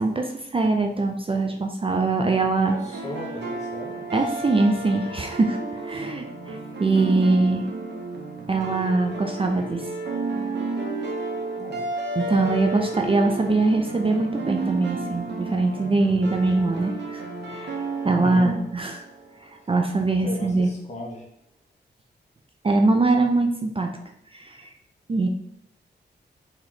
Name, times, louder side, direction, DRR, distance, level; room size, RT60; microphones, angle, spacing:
voice 1, 0.0-2.8 4.1-5.6 5.8-7.6 8.5-9.8 12.2-17.2 17.5-17.8 18.0-19.0 19.4-20.7 22.6-23.9 24.3-24.7 25.1-25.3, right 3 dB, 30° right, 4 dB, 0.4 m, -22 dB
voice 2, 2.7-4.0 5.9-6.0 11.6-11.9 18.0-18.6 20.2-21.2, left 1 dB, 40° left, -2 dB, 1.1 m, -36 dB
sound 1, 2.7-19.6, right 3 dB, 70° right, 0.8 m, -32 dB
3.2 x 3.0 x 3.8 m, 0.75 s
wide cardioid pair, 95°, 18 cm